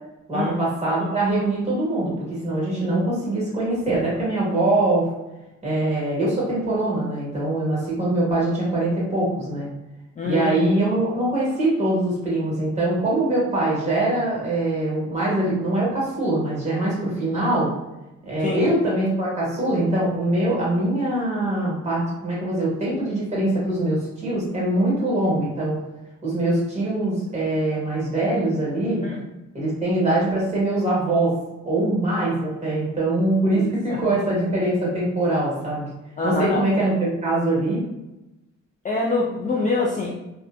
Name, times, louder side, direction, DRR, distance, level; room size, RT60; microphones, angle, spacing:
voice 1, 0.3-5.1 5.6-9.7 10.2-17.7 18.2-25.8 26.2-29.0 29.5-31.3 31.6-35.9 36.2-37.8, right 1 dB, 20° right, -6 dB, 1.3 m, -23 dB
voice 2, 10.2-10.7 18.4-18.7 29.0-29.2 33.5-34.0 36.2-36.6 38.8-40.1, left 3 dB, 25° left, -3 dB, 0.4 m, -25 dB
2.6 x 2.2 x 2.4 m, 0.98 s
cardioid pair, 90°, 30 cm